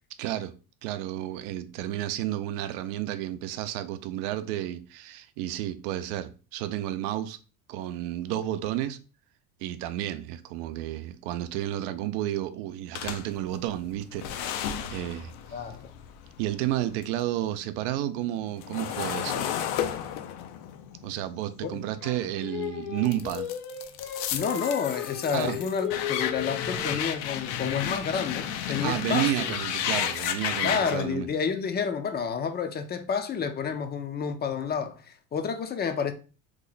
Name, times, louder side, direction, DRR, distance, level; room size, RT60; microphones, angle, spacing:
voice 1, 0.2-0.5 0.8-7.4 7.7-9.0 9.6-15.3 16.4-19.5 21.0-23.5 25.3-25.6 28.8-31.3, right 13 dB, 80° right, 0.5 m, -31 dB
sound 1, 12.9-17.2 17.6-22.5 23.0-31.0, left 9 dB, 80° left, 0.6 m, -33 dB
voice 2, 15.5-15.8 21.6-21.8 24.3-29.5 30.6-36.1, left 6 dB, 25° left, 0.4 m, -30 dB
Singing, 22.0-27.2, left 9 dB, 50° left, 0.9 m, -36 dB
3.0 x 2.1 x 3.8 m
supercardioid pair, 105°, 43 cm